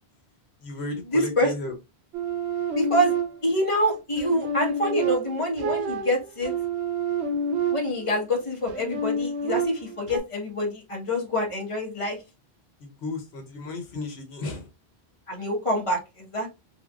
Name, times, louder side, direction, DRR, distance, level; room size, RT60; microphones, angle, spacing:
voice 1, 0.6-1.7 12.8-14.7, left 2 dB, 80° left, 4 dB, 1.1 m, -34 dB
voice 2, 1.1-1.5 2.8-3.1 3.4-6.5 7.7-12.2 15.3-16.5, equal, 30° left, -1 dB, 1.3 m, -26 dB
sound 1, 2.1-3.6 4.2-8.2 8.7-10.2, right 3 dB, 85° right, 1.0 m, -29 dB
3.4 x 3.4 x 2.4 m, 0.25 s
omnidirectional pair, 1.1 m